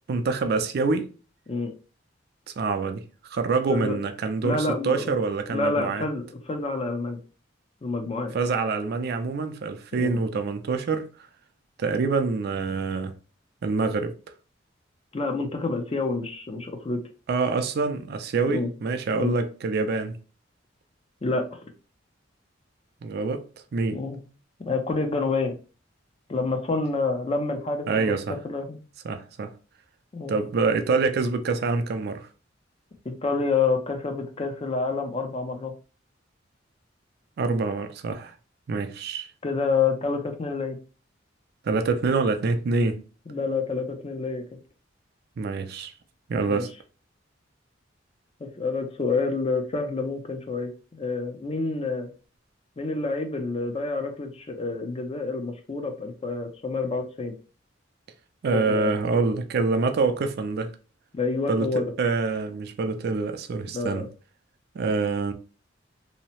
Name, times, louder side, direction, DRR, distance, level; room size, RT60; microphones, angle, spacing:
voice 1, 0.1-1.1 2.6-3.0 3.3-6.0 8.3-11.1 11.8-13.1 13.6-14.1 17.3-20.2 23.0-23.5 23.7-24.0 27.9-28.4 29.0-29.5 30.3-32.3 37.4-38.3 38.7-39.3 41.6-43.0 45.4-45.9 46.3-46.7 58.4-60.7 61.5-64.0 64.7-65.3, right 4 dB, 55° right, 0.4 m, -26 dB
voice 2, 4.4-5.2 5.5-7.2 7.8-8.3 10.0-10.2 15.1-17.0 18.5-18.7 19.1-19.3 21.2-21.6 23.9-24.2 24.7-25.5 26.3-28.1 28.4-28.8 30.1-30.4 33.2-35.7 39.4-40.8 43.3-44.4 46.4-46.7 48.4-52.1 52.8-57.3 58.5-58.9 61.1-61.8 63.7-64.1, left 3 dB, 30° left, 0.4 m, -28 dB
2.7 x 2.0 x 2.9 m
head